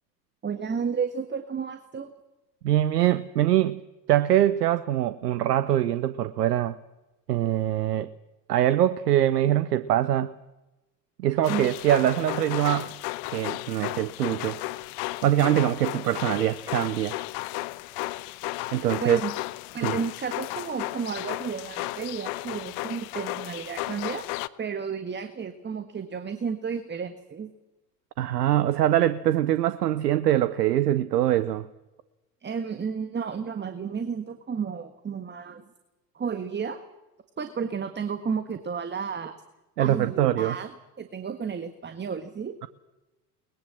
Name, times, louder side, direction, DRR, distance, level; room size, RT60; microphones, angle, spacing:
voice 1, 0.4-2.1 11.5-11.7 19.0-19.3 19.7-24.3 24.6-27.5 32.4-35.6 36.1-36.8 37.4-39.3 39.8-42.6, right 6 dB, 20° right, 1.6 m, -32 dB
voice 2, 2.6-3.8 4.1-6.8 7.3-8.1 8.5-10.3 11.2-12.9 13.3-14.7 15.2-17.2 18.7-19.2 19.8-20.0 28.2-31.7 39.8-40.5, right 12 dB, 80° right, 0.8 m, -23 dB
sound 1, 11.4-24.5, left 20 dB, 55° left, 0.9 m, -34 dB
22.5 x 20.5 x 7.6 m
hypercardioid pair, 70°, 48 cm